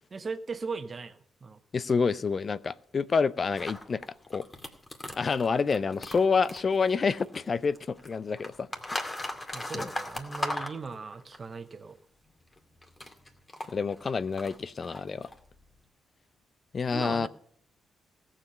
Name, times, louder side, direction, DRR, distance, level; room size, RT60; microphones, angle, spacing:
voice 1, 0.1-1.6 9.5-12.0 16.9-17.3, right 4 dB, 40° right, 10 dB, 1.1 m, -38 dB
voice 2, 1.7-4.0 4.3-4.4 5.1-8.7 9.7-9.9 13.7-15.3 16.7-17.3, left 5 dB, 45° left, 17 dB, 0.5 m, -28 dB
sound 1, 3.5-7.5 7.7-11.4 12.5-15.8, left 1 dB, 25° left, 2.2 m, -38 dB
17.0 x 7.5 x 5.7 m, 0.65 s
hypercardioid pair, 40°, 0 cm